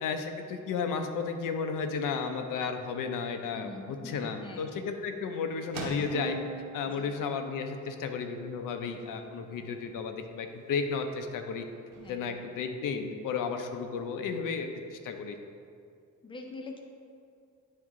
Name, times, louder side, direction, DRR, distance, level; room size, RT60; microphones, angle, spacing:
voice 1, 0.0-6.4 6.7-11.7 12.1-15.4, left 5 dB, 85° left, 6 dB, 0.7 m, -33 dB
voice 2, 3.5-4.7 6.9-7.0 12.0-12.4 16.2-16.8, left 3 dB, 15° left, 2 dB, 0.5 m, -44 dB
sound 1, 3.7-13.5, right 1 dB, 85° right, 1.1 m, -47 dB
sound 2, 6.1-9.9, right 2 dB, 30° right, 0.9 m, -46 dB
9.7 x 3.7 x 3.7 m, 2.3 s
cardioid pair, 170°, 31 cm